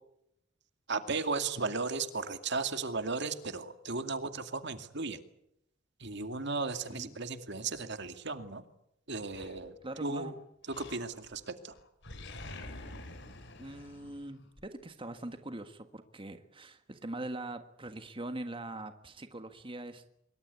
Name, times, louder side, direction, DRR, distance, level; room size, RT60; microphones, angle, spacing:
voice 1, 0.9-5.2 6.0-8.6 9.1-9.8 10.0-10.3 10.7-11.8, right 4 dB, 60° right, 8 dB, 2.3 m, -35 dB
Animal, 9.3-10.1 10.7-11.4 11.7-14.7, left 2 dB, 60° left, 4.0 m, -47 dB
voice 2, 9.8-10.3 13.6-20.1, right 2 dB, 25° right, 8 dB, 1.6 m, -42 dB
25.5 x 23.5 x 8.4 m, 0.78 s
head